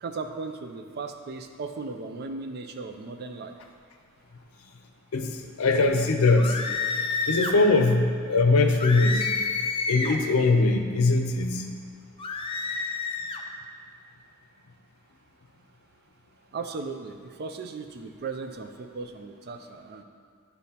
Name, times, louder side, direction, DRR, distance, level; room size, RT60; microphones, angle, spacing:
voice 1, 0.0-3.5 16.5-20.0, right 4 dB, 50° right, 6 dB, 0.4 m, -36 dB
voice 2, 5.1-6.6 7.3-9.3 9.9-11.7, left 3 dB, 70° left, 5 dB, 0.6 m, -21 dB
sound 1, 6.4-7.6 8.8-10.2 12.2-13.4, left 4 dB, 25° left, 0.4 m, -29 dB
9.8 x 4.1 x 2.8 m, 2.2 s
head